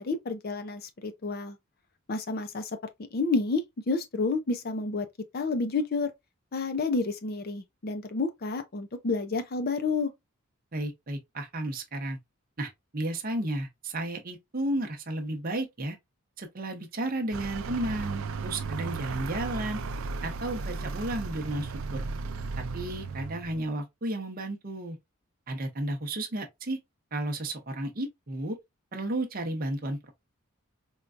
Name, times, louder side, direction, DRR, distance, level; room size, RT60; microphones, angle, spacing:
voice 1, 0.0-1.6 2.1-2.7 3.1-5.1 5.3-6.1 6.5-10.1, left 3 dB, 45° left, 0.5 m, -30 dB
voice 2, 10.7-12.2 12.6-16.0 16.4-19.8 20.2-22.1 22.7-25.0 25.5-26.8 27.1-28.6 28.9-30.1, right 1 dB, 40° right, 0.8 m, -33 dB
Vehicle, 17.3-23.7, right 4 dB, 65° right, 0.4 m, -35 dB
4.5 x 2.3 x 2.5 m
head